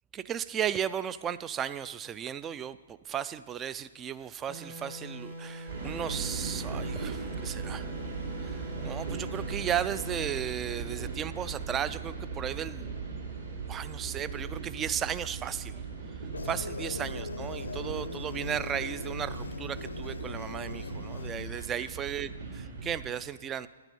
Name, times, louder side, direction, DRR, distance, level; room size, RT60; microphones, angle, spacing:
voice 1, 0.3-7.9 8.4-13.0 13.7-15.8 16.4-23.7, right 9 dB, 20° right, 15 dB, 0.3 m, -35 dB
sound 1, 4.5-10.3, right 1 dB, 75° right, 3.0 m, -43 dB
sound 2, 5.7-23.1, right 5 dB, 60° right, 3.1 m, -39 dB
sound 3, 16.3-21.9, left 3 dB, 80° left, 0.6 m, -40 dB
10.5 x 8.9 x 5.4 m, 1.3 s
figure-of-eight pair, 125°, 0 cm